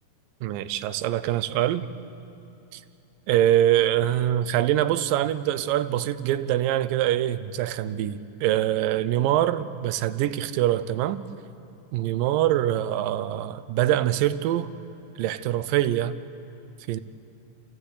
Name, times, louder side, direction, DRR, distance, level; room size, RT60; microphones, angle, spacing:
voice 1, 0.4-1.9 2.7-2.8 3.3-11.3 11.9-14.7 15.2-16.2 16.9-17.0, right 12 dB, 85° right, 14 dB, 2.4 m, -24 dB
28.0 x 15.0 x 8.2 m, 2.9 s
omnidirectional pair, 3.9 m